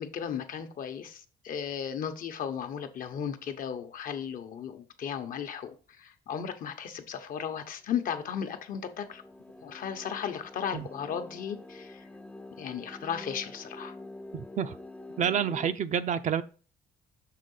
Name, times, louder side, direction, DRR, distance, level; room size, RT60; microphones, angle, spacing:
voice 1, 0.0-9.2 9.6-12.0 12.6-13.9, left 8 dB, 55° left, 0.9 m, -35 dB
sound 1, 8.2-15.7, left 2 dB, 10° left, 0.4 m, -46 dB
voice 2, 14.3-14.8 15.2-16.4, right 8 dB, 45° right, 0.5 m, -28 dB
6.7 x 3.6 x 5.5 m
cardioid pair, 110°, 17 cm